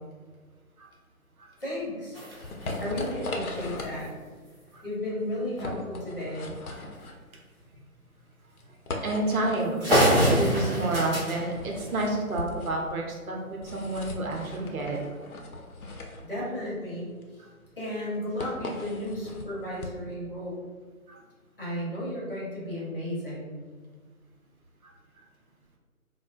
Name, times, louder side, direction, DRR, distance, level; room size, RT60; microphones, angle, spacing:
voice 1, 1.6-2.2 2.8-4.1 4.8-6.5 16.2-17.1 17.8-20.6 21.6-23.5, left 1 dB, 40° left, -6 dB, 0.9 m, -34 dB
sound 1, 1.8-20.1, left 2 dB, 75° left, 0.6 m, -37 dB
sound 2, 2.1-4.1 5.6-5.7 6.0-6.1 6.5-6.7 7.6-7.8 8.5-8.6 9.1-9.2 9.5-9.6 9.8-12.5, equal, 40° right, 0.8 m, -28 dB
voice 2, 9.0-15.0 17.4-17.5 21.1-21.2, right 2 dB, 70° right, 0 dB, 0.7 m, -30 dB
3.4 x 2.1 x 2.3 m, 1.4 s
figure-of-eight pair, 170°, 44 cm